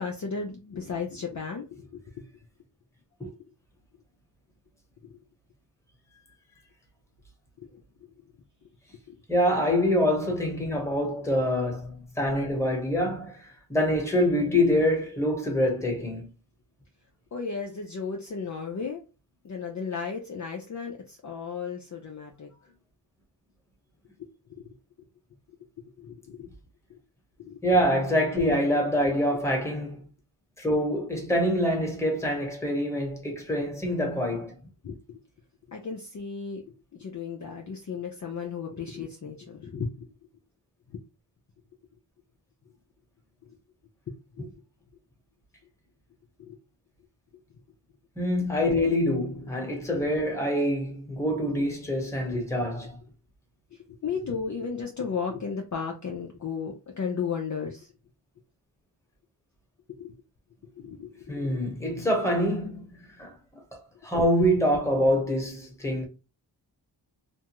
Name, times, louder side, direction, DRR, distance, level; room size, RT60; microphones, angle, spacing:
voice 1, 0.0-2.0 9.1-9.2 17.3-19.0 19.4-22.5 26.0-26.5 27.4-27.6 34.8-35.2 35.7-36.6 36.9-40.1 46.4-46.6 52.3-52.4 54.0-57.9 60.0-60.1 60.8-61.6, left 5 dB, 45° left, 0.5 m, -34 dB
voice 2, 9.3-16.3 27.6-30.1 30.6-34.5 48.2-53.0 61.3-62.8 63.1-63.3 63.7-66.1, equal, 5° left, 1.1 m, -25 dB
2.6 x 2.3 x 2.9 m
wide cardioid pair, 85°, 42 cm